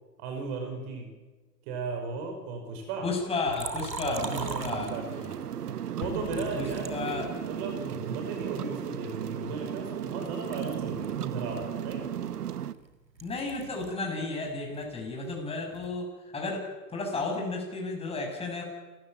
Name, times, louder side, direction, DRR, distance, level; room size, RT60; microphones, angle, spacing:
voice 1, 0.2-1.1 1.7-3.1 4.0-5.3 5.9-12.1, right 4 dB, 40° right, 4 dB, 5.8 m, -36 dB
voice 2, 3.0-4.9 6.3-7.3 13.2-18.6, left 3 dB, 10° left, 0 dB, 7.6 m, -33 dB
Liquid, 3.5-5.4 6.2-7.8 8.4-10.1 10.4-14.1 14.4-16.0, right 4 dB, 85° right, 3.4 m, -42 dB
sound 1, 4.2-12.7, right 9 dB, 65° right, 1.3 m, -36 dB
Explosion, 6.0-7.7, left 10 dB, 40° left, 2.1 m, -45 dB
29.5 x 15.0 x 9.3 m, 1.3 s
figure-of-eight pair, 115°, 49 cm